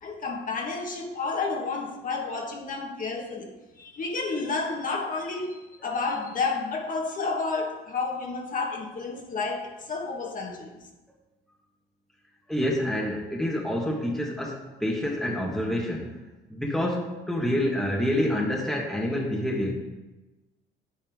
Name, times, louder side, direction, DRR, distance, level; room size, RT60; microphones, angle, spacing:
voice 1, 0.0-3.5 3.8-10.8, left 4 dB, 40° left, 1 dB, 1.4 m, -31 dB
voice 2, 12.5-16.1 16.5-19.7, left 1 dB, ahead, -1 dB, 1.4 m, -27 dB
9.6 x 9.0 x 3.6 m, 1.1 s
cardioid pair, 135°, 21 cm